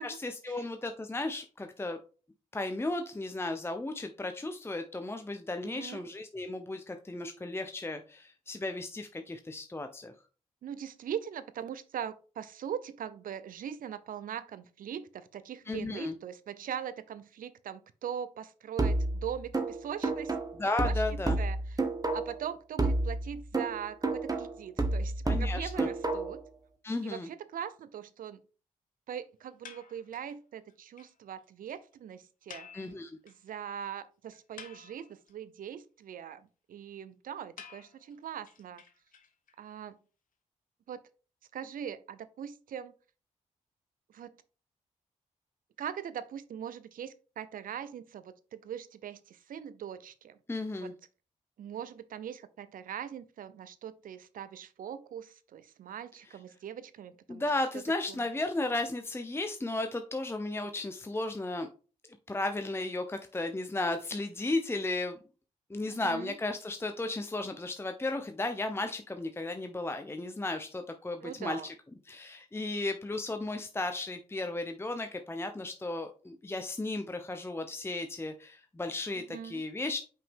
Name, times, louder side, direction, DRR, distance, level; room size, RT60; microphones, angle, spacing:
voice 1, 0.0-2.0 2.5-10.1 15.7-16.1 20.5-21.4 25.3-25.9 26.8-27.3 32.7-33.1 50.5-50.9 57.3-61.7 62.3-65.2 65.7-71.7 72.1-80.0, left 2 dB, 15° left, 0.7 m, -34 dB
voice 2, 5.6-6.1 10.6-20.3 20.8-21.8 22.1-26.4 27.0-28.4 29.1-32.7 33.2-38.8 39.6-40.0 40.9-41.0 41.5-42.9 44.1-44.3 45.8-50.4 50.8-50.9 51.6-57.4 58.1-58.2 65.9-66.3 71.2-71.7 79.1-79.6, right 9 dB, 70° right, 0.6 m, -41 dB
sound 1, 18.8-22.5 22.8-26.5, right 2 dB, 25° right, 1.3 m, -31 dB
sound 2, 29.6-30.4 30.7-30.8 31.0-31.1 31.4-31.5 31.7-31.8 32.5-33.5 33.8-33.9 34.3-35.3 37.6-39.5, left 7 dB, 70° left, 1.0 m, -51 dB
5.7 x 5.0 x 3.6 m
supercardioid pair, 50°, 15 cm